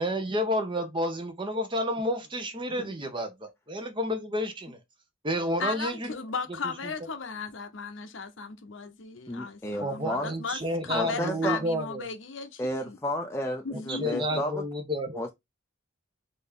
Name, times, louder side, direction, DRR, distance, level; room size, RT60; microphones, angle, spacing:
voice 1, 0.0-4.8 5.2-6.1 9.8-12.1 13.7-15.2, equal, 25° right, 0.9 m, -30 dB
voice 2, 5.6-13.0 13.6-14.4, left 4 dB, 70° left, 0.8 m, -36 dB
voice 3, 9.3-10.3 10.9-11.6 12.6-14.6 15.1-15.3, left 1 dB, 15° left, 0.5 m, -32 dB
4.1 x 3.5 x 3.6 m
head